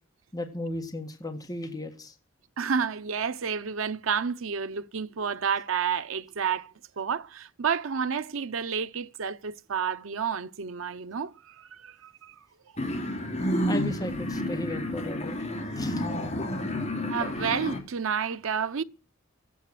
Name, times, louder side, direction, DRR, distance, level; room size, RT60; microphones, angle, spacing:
voice 1, 0.3-2.1 13.6-15.4 15.7-16.0 16.4-16.5, left 1 dB, 20° left, 1.6 m, -35 dB
voice 2, 2.6-6.7 7.0-12.3 17.1-18.8, right 6 dB, 90° right, 0.7 m, -30 dB
sound 1, 12.8-17.8, left 1 dB, 35° left, 2.6 m, -30 dB
13.5 x 8.5 x 7.4 m
head